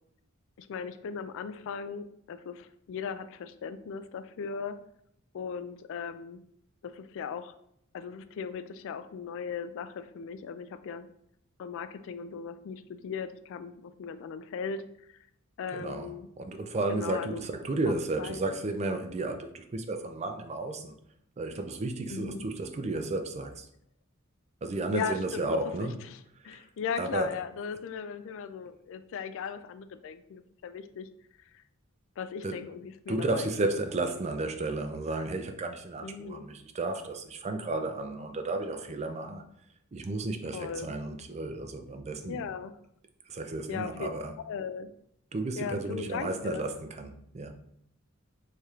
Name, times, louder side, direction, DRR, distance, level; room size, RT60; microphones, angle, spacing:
voice 1, 0.6-4.8 5.3-6.4 6.8-7.5 7.9-11.1 11.6-14.8 15.1-15.2 15.6-16.3 16.9-17.4 17.9-18.4 22.1-22.4 24.9-31.1 32.2-33.7 36.0-36.4 40.5-40.9 42.3-42.7 43.7-44.1 44.4-44.9 45.6-46.6, left 6 dB, 65° left, 0.3 m, -38 dB
voice 2, 15.7-20.9 21.4-23.6 24.6-26.0 26.5-26.6 27.0-27.3 32.4-32.6 33.1-39.4 39.9-42.4 43.3-44.3 45.3-47.6, right 2 dB, 30° right, 0.4 m, -33 dB
4.4 x 3.2 x 2.4 m
head